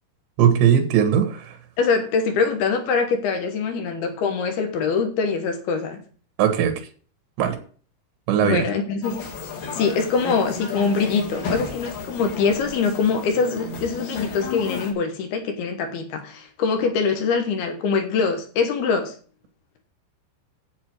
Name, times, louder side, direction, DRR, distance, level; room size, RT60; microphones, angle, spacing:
voice 1, 0.4-1.6 6.4-6.8 7.4-7.6 8.3-8.7, right 8 dB, 85° right, 3.7 m, -19 dB
voice 2, 1.8-6.0 8.4-9.2 9.7-19.1, left 5 dB, 70° left, 2.9 m, -23 dB
sound 1, 9.0-14.9, left 4 dB, 50° left, 2.9 m, -33 dB
9.3 x 8.3 x 4.6 m
omnidirectional pair, 5.0 m